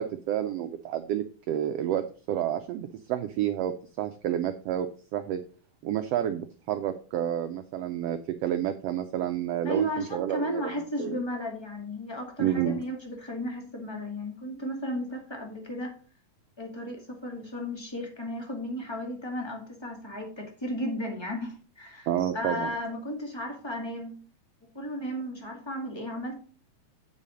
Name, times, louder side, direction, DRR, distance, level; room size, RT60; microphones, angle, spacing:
voice 1, 0.0-2.0 2.3-4.9 5.1-5.4 5.8-10.6 11.0-11.2 12.4-12.8 22.1-22.7, right 11 dB, 90° right, 8 dB, 1.4 m, -29 dB
voice 2, 9.6-15.9 16.6-22.1 22.3-24.2 24.7-26.4, equal, 10° left, 1 dB, 1.4 m, -34 dB
8.2 x 5.6 x 5.1 m, 0.40 s
omnidirectional pair, 3.5 m